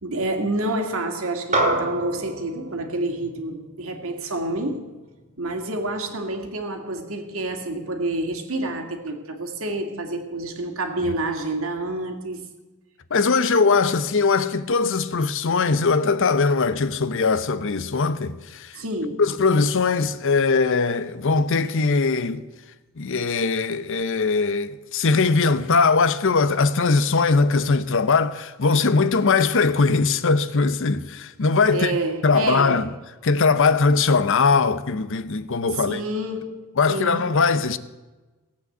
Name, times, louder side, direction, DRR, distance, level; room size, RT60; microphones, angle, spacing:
voice 1, 0.0-4.9 5.4-12.4 18.8-19.2 31.7-32.9 35.7-37.3, right 2 dB, 65° right, 2.0 m, -28 dB
sound 1, 1.5-6.2, right 2 dB, 30° right, 2.4 m, -29 dB
voice 2, 13.1-18.8 19.2-22.4 23.0-32.0 32.2-32.9 33.2-36.0 36.8-37.8, left 4 dB, 60° left, 0.7 m, -20 dB
17.5 x 8.3 x 7.9 m
head